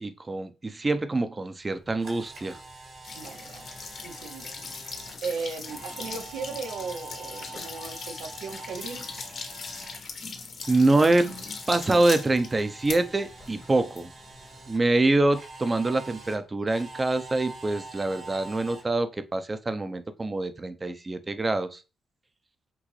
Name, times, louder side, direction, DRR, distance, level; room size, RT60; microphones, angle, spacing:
voice 1, 0.0-2.6 10.7-11.3 11.7-14.1 14.7-21.8, right 2 dB, 30° right, 0.6 m, -25 dB
Camera, 1.6-10.0 10.3-14.8 15.3-18.8, right 3 dB, 70° right, 2.0 m, -45 dB
sound 1, 3.0-14.7, left 4 dB, 60° left, 1.1 m, -40 dB
voice 2, 3.1-3.7 4.0-4.9 5.2-9.0, right 5 dB, 85° right, 0.7 m, -37 dB
6.0 x 2.6 x 3.2 m
cardioid pair, 65°, 0 cm